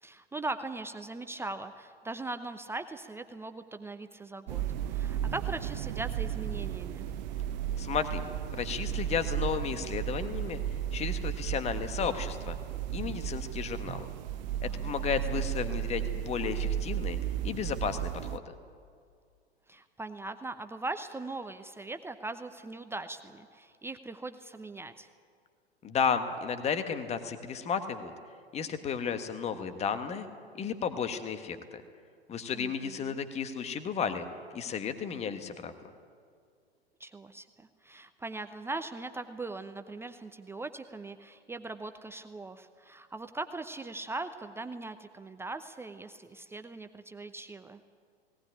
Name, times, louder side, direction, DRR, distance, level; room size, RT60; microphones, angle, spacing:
voice 1, 0.0-4.6 4.9-7.1 14.6-14.9 15.3-15.4 19.7-25.1 32.5-33.2 37.0-47.8, right 2 dB, 5° right, 8 dB, 0.7 m, -40 dB
sound 1, 4.5-18.4, right 10 dB, 45° right, 0.8 m, -34 dB
voice 2, 7.8-8.2 8.5-10.6 10.9-12.5 12.9-14.1 14.6-17.2 17.4-18.5 25.8-28.1 28.5-30.3 30.6-31.8 32.3-34.2 34.5-35.7, left 7 dB, 20° left, 9 dB, 1.5 m, -33 dB
18.5 x 18.0 x 9.9 m, 2.2 s
figure-of-eight pair, 95°, 32 cm